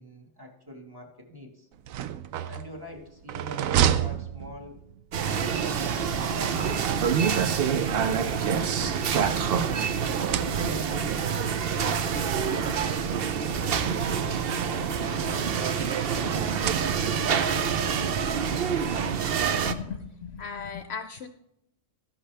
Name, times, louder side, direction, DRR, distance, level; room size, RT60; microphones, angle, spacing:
voice 1, 0.0-1.7 2.5-4.8 5.2-6.4 7.1-9.8 10.1-12.7 14.0-17.3 17.8-18.8, left 1 dB, 15° right, 1 dB, 1.7 m, -44 dB
sound 1, 1.7-5.0 6.3-7.5 8.3-9.7 10.1-11.0 12.0-12.1 12.4-12.5 13.7-15.0 16.2-17.4, right 10 dB, 85° right, 1.0 m, -31 dB
sound 2, 5.1-19.7, right 7 dB, 55° right, 0.8 m, -26 dB
voice 2, 19.6-21.3, left 6 dB, 60° left, 8 dB, 0.8 m, -36 dB
13.5 x 11.0 x 3.4 m, 0.81 s
omnidirectional pair, 1.4 m